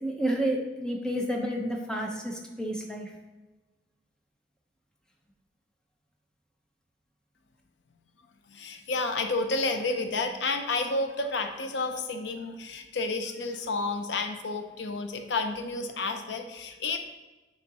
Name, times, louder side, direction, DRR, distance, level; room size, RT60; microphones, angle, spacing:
voice 1, 0.0-3.1, right 1 dB, 5° left, 0 dB, 0.9 m, -30 dB
voice 2, 8.5-17.0, left 3 dB, 75° left, 6 dB, 0.6 m, -30 dB
8.5 x 5.1 x 2.9 m, 1.2 s
head